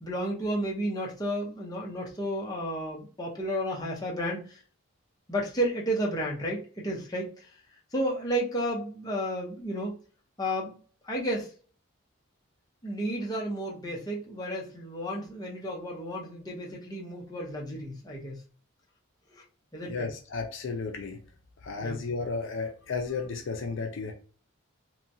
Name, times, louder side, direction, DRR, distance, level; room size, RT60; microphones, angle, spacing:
voice 1, 0.0-4.6 5.3-7.5 7.9-10.0 10.4-10.8 11.0-11.5 12.8-18.4 19.3-19.4 19.7-20.1 21.8-22.0, equal, 15° left, -3 dB, 0.7 m, -32 dB
voice 2, 19.9-21.2 21.6-24.1, left 4 dB, 60° left, 4 dB, 0.4 m, -33 dB
2.9 x 2.2 x 2.6 m, 0.40 s
head